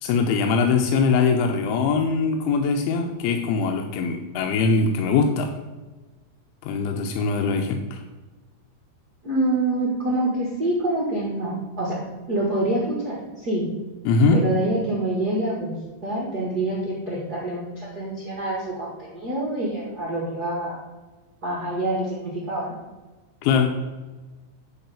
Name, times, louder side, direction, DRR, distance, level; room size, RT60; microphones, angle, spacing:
voice 1, 0.0-5.5 6.6-8.0 14.1-14.4 23.4-23.7, left 4 dB, 85° left, 3 dB, 3.2 m, -22 dB
voice 2, 9.2-13.6 14.3-15.7 16.0-20.8 21.4-22.7, right 1 dB, 85° right, -5 dB, 0.8 m, -26 dB
9.8 x 4.8 x 6.9 m, 1.2 s
omnidirectional pair, 5.3 m